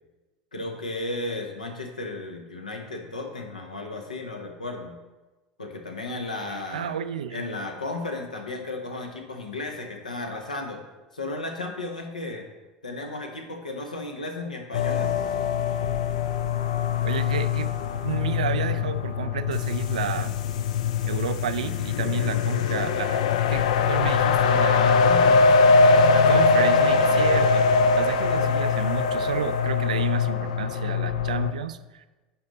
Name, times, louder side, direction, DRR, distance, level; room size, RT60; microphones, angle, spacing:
voice 1, 0.5-5.0 5.6-7.0 7.3-10.8 11.1-12.5 12.8-15.1 24.8-25.6, left 2 dB, 80° left, 3 dB, 1.0 m, -34 dB
voice 2, 6.7-7.5 17.0-20.4 21.0-23.2 23.5-25.0 26.1-32.1, right 8 dB, 70° right, 12 dB, 0.4 m, -31 dB
sound 1, 14.7-31.5, left 5 dB, 65° left, 0.5 m, -22 dB
10.0 x 4.1 x 4.1 m, 1.2 s
figure-of-eight pair, 80°, 4 cm